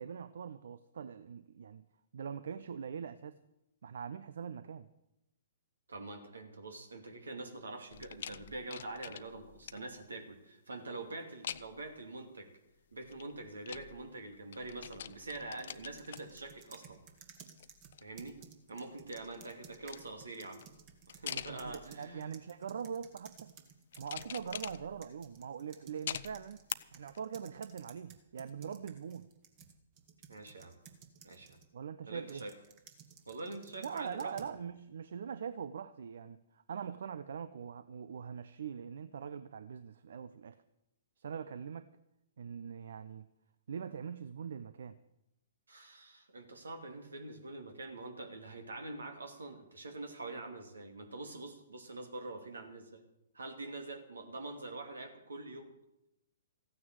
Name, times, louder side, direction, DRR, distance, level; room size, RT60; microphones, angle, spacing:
voice 1, 0.0-1.9 2.1-3.4 3.8-4.9 21.3-23.5 24.0-26.6 26.9-29.3 31.7-32.4 33.8-40.6 41.2-41.9 42.4-43.3 43.7-45.0, right 7 dB, 65° right, 14 dB, 0.6 m, -42 dB
voice 2, 5.9-12.5 12.9-17.0 18.0-18.4 18.7-20.6 21.1-22.3 30.3-30.8 31.2-31.6 32.0-32.5 33.3-34.3 45.7-53.0 53.3-55.7, right 2 dB, 80° right, 5 dB, 2.7 m, -45 dB
sound 1, 7.9-10.0 11.4-11.9 13.0-14.3 14.5-17.0 17.4-18.4 18.9-22.1 22.7-23.2 23.9-25.2 26.1-26.7 27.1-27.2, left 9 dB, 55° left, 0.6 m, -46 dB
sound 2, 15.6-24.7 25.0-31.7 32.3-34.6, right 7 dB, 35° right, 1.9 m, -57 dB
15.0 x 9.5 x 7.9 m, 0.89 s
figure-of-eight pair, 120°, 0 cm